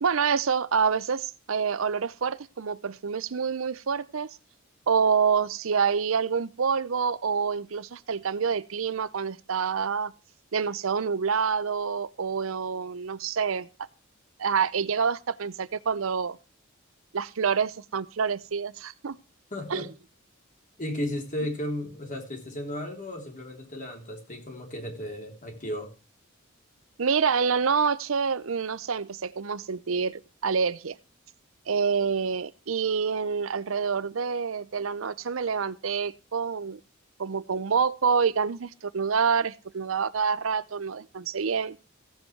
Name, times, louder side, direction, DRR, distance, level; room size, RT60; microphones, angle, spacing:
voice 1, 0.0-4.3 4.9-10.1 10.5-13.7 14.4-16.4 17.1-19.2 19.7-19.9 27.0-31.0 31.7-36.8 37.2-41.8, right 6 dB, 85° right, 0.7 m, -27 dB
voice 2, 19.5-19.9 20.8-25.9, left 1 dB, 40° left, 3.4 m, -34 dB
15.5 x 8.0 x 4.6 m
head